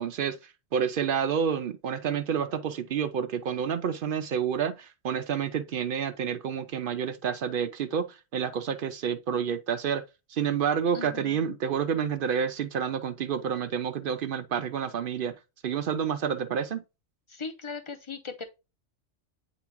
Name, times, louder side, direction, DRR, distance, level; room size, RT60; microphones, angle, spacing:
voice 1, 0.0-10.0 10.3-15.3 15.6-16.8, right 7 dB, 60° right, 0.5 m, -29 dB
voice 2, 10.9-11.6 17.3-18.4, left 4 dB, 25° left, 0.8 m, -38 dB
8.9 x 3.6 x 3.0 m
omnidirectional pair, 1.3 m